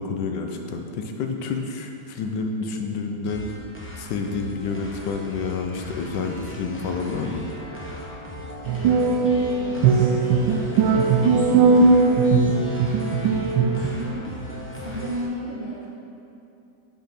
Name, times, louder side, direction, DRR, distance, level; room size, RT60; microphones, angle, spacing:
voice 1, 0.0-3.5 4.0-7.4, left 4 dB, 80° left, 4 dB, 1.3 m, -29 dB
sound 1, 3.3-15.3, left 1 dB, 10° left, 0.5 m, -37 dB
voice 2, 8.6-15.9, right 1 dB, 30° right, -8 dB, 2.0 m, -35 dB
sound 2, 8.7-13.9, right 4 dB, 85° right, 1.3 m, -19 dB
7.3 x 5.5 x 5.8 m, 2.7 s
omnidirectional pair, 1.9 m